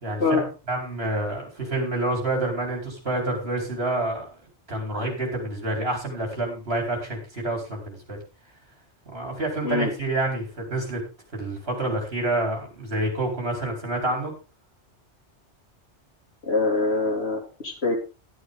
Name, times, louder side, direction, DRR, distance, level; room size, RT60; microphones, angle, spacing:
voice 1, 0.0-0.4 0.7-4.2 4.7-8.2 9.1-11.0 11.3-14.3, right 2 dB, 60° right, 1 dB, 4.9 m, -28 dB
voice 2, 16.4-17.9, left 3 dB, 60° left, 0 dB, 3.5 m, -24 dB
12.0 x 11.5 x 3.9 m, 0.31 s
omnidirectional pair, 1.2 m